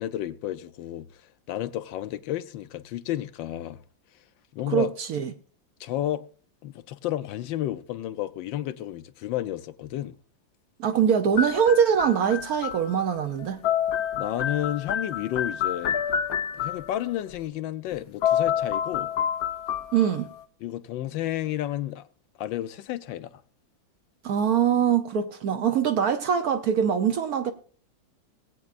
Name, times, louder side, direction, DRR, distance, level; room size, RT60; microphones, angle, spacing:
voice 1, 0.0-3.8 4.5-4.9 5.8-6.3 6.6-10.2 14.1-16.0 16.5-19.1 20.6-22.1 22.4-23.4, left 13 dB, 80° left, 1.4 m, -31 dB
voice 2, 4.7-5.3 10.8-13.6 19.9-20.3 24.2-27.5, right 8 dB, 65° right, 1.0 m, -23 dB
sound 1, 11.4-13.1 13.4-17.0 17.9-18.0 18.2-20.3, left 9 dB, 60° left, 1.1 m, -28 dB
19.5 x 8.5 x 2.5 m
omnidirectional pair, 2.1 m